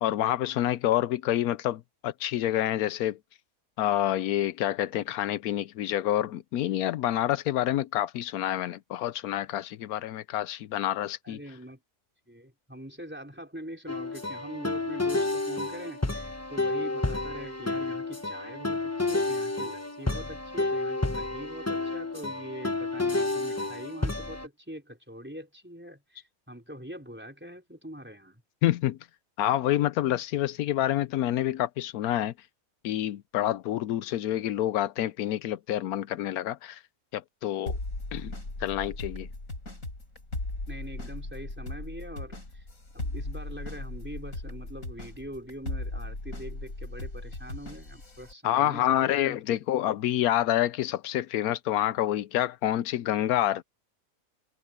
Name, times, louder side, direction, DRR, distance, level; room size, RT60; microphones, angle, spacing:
voice 1, 0.0-3.2 3.8-11.4 28.6-29.0 29.4-32.3 32.8-36.8 37.1-37.8 38.1-38.3 38.6-39.3 48.4-53.6, left 12 dB, 85° left, 1.1 m, -28 dB
voice 2, 11.2-11.8 12.3-28.4 40.7-42.6 42.9-49.4, equal, 5° right, 4.9 m, -43 dB
sound 1, 13.9-24.5, left 2 dB, 10° left, 1.0 m, -30 dB
sound 2, 37.7-48.3, left 2 dB, 65° left, 6.0 m, -37 dB
omnidirectional pair, 1.5 m